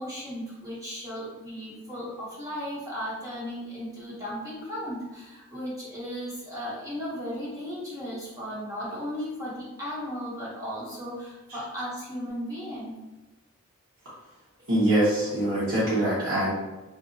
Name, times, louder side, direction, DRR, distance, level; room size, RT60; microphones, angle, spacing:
voice 1, 0.0-12.9, equal, 15° right, -7 dB, 0.6 m, -36 dB
voice 2, 14.7-16.5, right 1 dB, 75° right, -10 dB, 1.0 m, -23 dB
2.8 x 2.7 x 2.6 m, 1.1 s
head